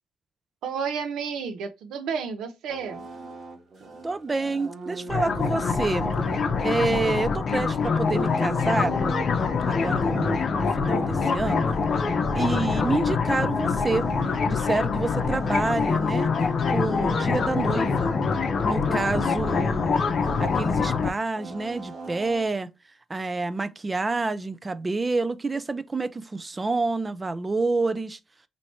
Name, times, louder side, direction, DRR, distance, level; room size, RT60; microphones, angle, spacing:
voice 1, 0.6-3.0, right 6 dB, 85° right, 0.6 m, -32 dB
sound 1, 2.7-19.7 20.2-22.4, right 3 dB, 60° right, 1.3 m, -40 dB
voice 2, 4.0-6.1 6.6-9.0 9.7-11.7 12.4-14.1 14.4-16.3 16.7-18.2 18.6-20.1 20.4-22.7 23.1-28.2, right 3 dB, 25° right, 0.4 m, -28 dB
sound 2, 5.1-21.1, left 5 dB, 50° left, 0.7 m, -25 dB
3.0 x 2.8 x 4.3 m
cardioid pair, 90°, 0 cm